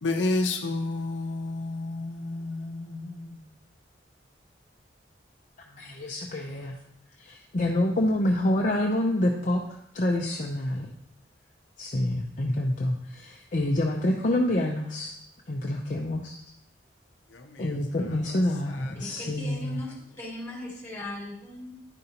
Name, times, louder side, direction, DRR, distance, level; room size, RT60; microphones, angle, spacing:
voice 1, 0.0-3.4 17.3-17.8 18.8-18.9, left 2 dB, 90° left, 0.7 m, -31 dB
voice 2, 5.7-6.8 7.2-9.6 9.9-10.9 11.8-15.2 15.5-16.4 17.6-19.8, left 1 dB, 45° left, 0.7 m, -27 dB
voice 3, 18.9-21.7, left 2 dB, 15° left, 2.7 m, -39 dB
11.0 x 5.2 x 2.9 m
head